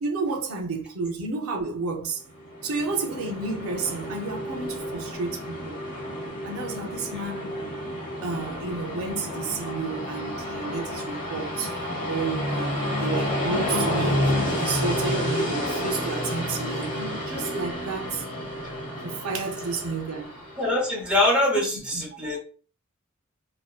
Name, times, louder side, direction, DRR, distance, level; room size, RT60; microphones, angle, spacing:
voice 1, 0.0-2.2 2.6-5.8 6.4-7.6 8.2-11.8 12.1-18.2 19.0-20.3 21.6-21.7 21.9-22.0, right 4 dB, 90° right, 0.5 m, -31 dB
Train, 2.3-21.0, equal, 40° left, 1.0 m, -30 dB
voice 2, 20.6-22.4, left 1 dB, 5° right, 0.7 m, -23 dB
2.5 x 2.1 x 2.3 m
head